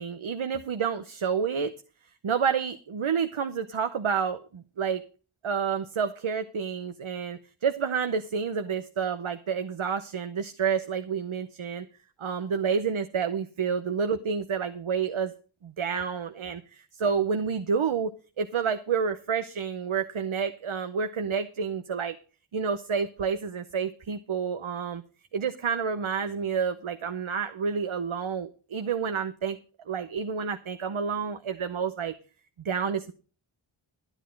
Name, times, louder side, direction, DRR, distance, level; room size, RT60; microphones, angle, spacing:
voice 1, 0.0-1.7 2.2-5.0 5.4-11.9 12.2-15.3 15.6-18.1 18.4-22.2 22.5-25.0 25.3-29.6 29.9-32.2 32.6-33.1, right 6 dB, 75° right, 9 dB, 0.9 m, -29 dB
12.5 x 9.1 x 5.2 m, 0.37 s
wide cardioid pair, 55°, 49 cm